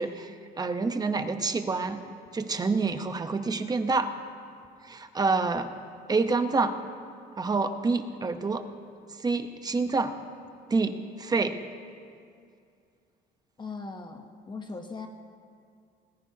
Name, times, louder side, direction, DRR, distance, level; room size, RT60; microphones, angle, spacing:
voice 1, 0.0-2.0 2.3-4.1 4.8-5.7 6.1-6.7 7.4-8.6 9.2-10.1 10.7-11.6, right 4 dB, 25° right, 8 dB, 0.9 m, -27 dB
voice 2, 13.6-15.1, left 4 dB, 25° left, 4 dB, 1.0 m, -39 dB
20.5 x 19.5 x 2.9 m, 2.4 s
cardioid pair, 110°, 17 cm